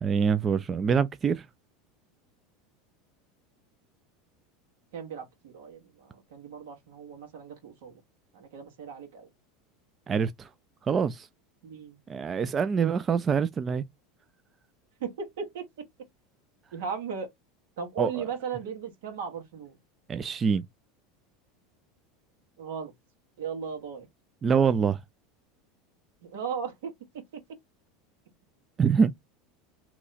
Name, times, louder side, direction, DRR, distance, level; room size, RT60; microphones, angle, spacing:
voice 1, 0.0-1.5 10.1-10.5 10.8-11.3 12.1-13.8 18.0-18.3 20.1-20.6 24.4-25.0 28.8-29.1, right 6 dB, 30° right, 0.3 m, -25 dB
voice 2, 4.9-7.9 8.3-9.3 11.6-12.0 15.0-15.7 16.7-17.3 17.8-19.7 22.6-22.9 23.4-24.1 26.2-27.2, right 6 dB, 80° right, 1.4 m, -37 dB
2.9 x 2.3 x 4.0 m
supercardioid pair, 110°, 0 cm